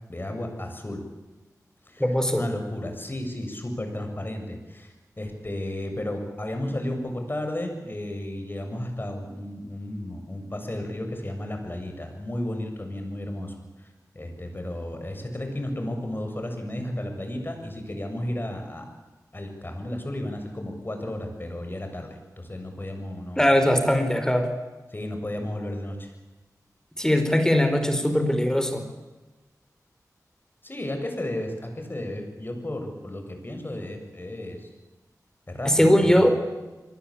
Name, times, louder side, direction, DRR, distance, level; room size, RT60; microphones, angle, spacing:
voice 1, 0.1-1.0 1.9-2.1 2.3-13.5 14.1-18.9 19.3-23.5 24.9-26.1 30.6-34.7 35.5-36.4, left 1 dB, 30° left, 4 dB, 7.2 m, -33 dB
voice 2, 2.0-2.4 23.4-24.5 27.0-28.9 35.6-36.3, equal, 10° left, 8 dB, 4.7 m, -20 dB
26.5 x 20.5 x 8.8 m, 1.2 s
wide cardioid pair, 65°, 6 cm